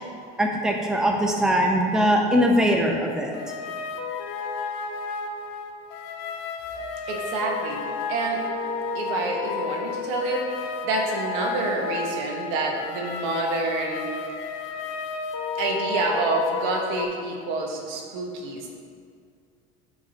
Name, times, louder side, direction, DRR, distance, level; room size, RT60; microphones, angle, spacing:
voice 1, 0.4-3.4, equal, 5° right, 0 dB, 0.7 m, -21 dB
sound 1, 3.3-17.0, left 5 dB, 75° left, 0.7 m, -32 dB
voice 2, 7.1-8.4 8.9-14.1 15.6-18.7, right 3 dB, 75° right, 0 dB, 1.5 m, -28 dB
13.5 x 4.8 x 2.9 m, 2.2 s
cardioid pair, 135°, 20 cm